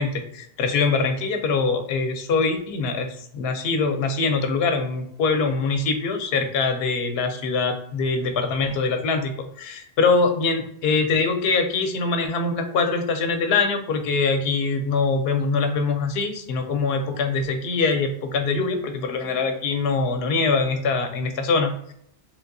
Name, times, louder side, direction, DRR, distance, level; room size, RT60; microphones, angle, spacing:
voice 1, 0.0-3.1 3.3-9.3 9.6-21.9, left 4 dB, 70° left, 5 dB, 0.8 m, -23 dB
3.3 x 2.6 x 2.5 m, 0.67 s
omnidirectional pair, 1.1 m